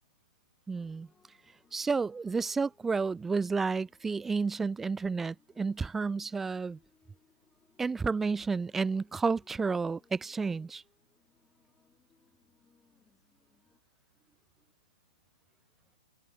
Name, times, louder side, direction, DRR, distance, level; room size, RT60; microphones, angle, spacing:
sound 1, 0.7-13.8, left 5 dB, 10° left, 7.8 m, -68 dB
voice 1, 0.7-1.1 1.7-6.8 7.8-10.8, right 4 dB, 5° right, 0.4 m, -31 dB
hypercardioid pair, 155°, 3 cm